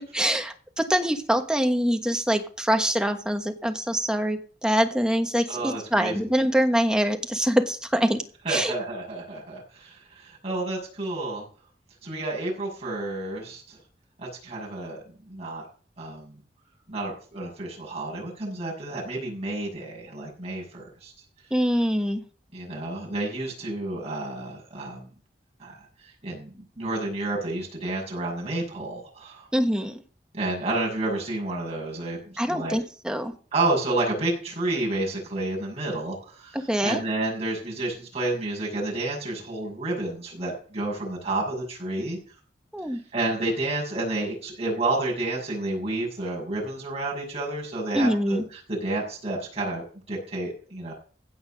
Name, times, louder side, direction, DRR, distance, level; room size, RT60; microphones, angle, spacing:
voice 1, 0.0-8.2 8.5-8.7 21.5-22.2 29.5-30.0 32.4-33.3 36.5-37.0 42.7-43.0 47.9-48.4, equal, 5° right, 5 dB, 1.3 m, -24 dB
voice 2, 5.5-6.2 8.4-11.4 12.0-13.8 14.2-15.0 15.3-15.6 16.0-16.3 16.9-21.1 22.5-25.0 25.6-25.7 26.2-29.5 30.3-32.2 32.5-32.8 33.5-42.2 43.1-50.9, right 2 dB, 35° right, -3 dB, 6.8 m, -30 dB
16.0 x 6.0 x 6.4 m, 0.42 s
head